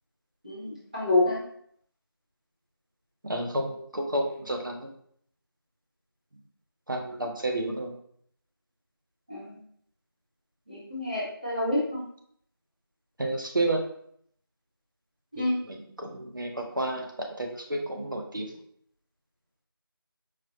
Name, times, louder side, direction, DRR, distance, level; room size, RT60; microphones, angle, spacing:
voice 1, 0.4-1.4 7.6-7.7 9.3-9.6 10.7-12.0 15.3-15.5, left 2 dB, 20° right, -8 dB, 1.1 m, -28 dB
voice 2, 3.2-4.9 6.9-7.9 13.2-13.8 15.4-18.6, right 1 dB, 55° right, 2 dB, 0.8 m, -31 dB
5.0 x 3.4 x 2.8 m, 0.66 s
figure-of-eight pair, 180°, 13 cm